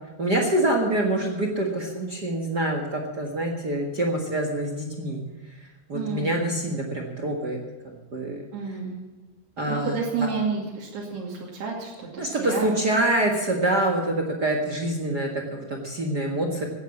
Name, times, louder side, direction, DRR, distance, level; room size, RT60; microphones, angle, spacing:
voice 1, 0.2-5.2 5.5-5.6 5.9-7.6 7.9-8.8 9.6-10.3 12.2-16.6, right 1 dB, 45° right, 2 dB, 1.3 m, -26 dB
voice 2, 5.9-6.4 8.5-9.0 9.7-12.7, right 5 dB, 85° right, -3 dB, 4.4 m, -30 dB
16.0 x 9.8 x 7.3 m, 1.2 s
omnidirectional pair, 4.5 m